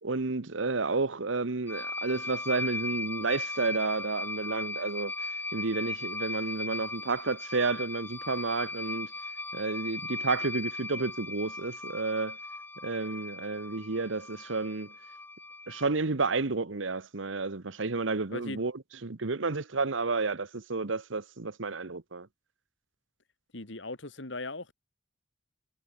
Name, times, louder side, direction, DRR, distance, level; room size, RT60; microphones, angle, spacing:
voice 1, 0.0-9.1 9.5-12.4 12.8-14.9 15.7-18.7 19.0-22.3, right 3 dB, 80° right, 1.1 m, -31 dB
sound 1, 1.7-15.9, left 3 dB, 10° left, 3.5 m, -38 dB
voice 2, 18.3-18.6 23.5-24.7, left 2 dB, 70° left, 2.6 m, -38 dB
head